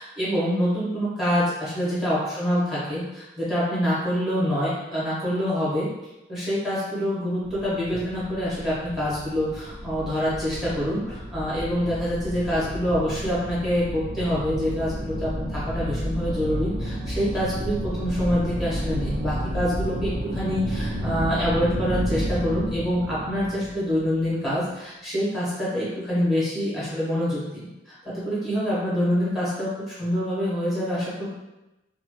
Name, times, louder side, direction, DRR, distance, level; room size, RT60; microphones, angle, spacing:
voice 1, 0.0-5.9 6.3-31.3, equal, ahead, -9 dB, 1.2 m, -26 dB
sound 1, 7.4-24.4, equal, 65° right, 0.6 m, -31 dB
2.9 x 2.3 x 3.0 m, 0.98 s
head